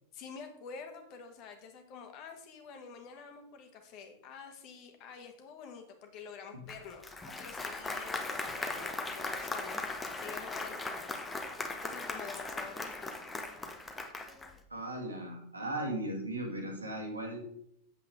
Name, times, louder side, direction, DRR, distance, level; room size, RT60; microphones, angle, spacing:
voice 1, 0.1-11.5 11.8-13.2, left 5 dB, 40° left, 6 dB, 1.4 m, -48 dB
Applause, 6.7-14.6, left 3 dB, 10° left, 1.0 m, -38 dB
voice 2, 14.7-17.4, right 1 dB, 80° right, 2 dB, 1.9 m, -37 dB
8.2 x 7.4 x 3.6 m, 0.72 s
figure-of-eight pair, 90°, 0 cm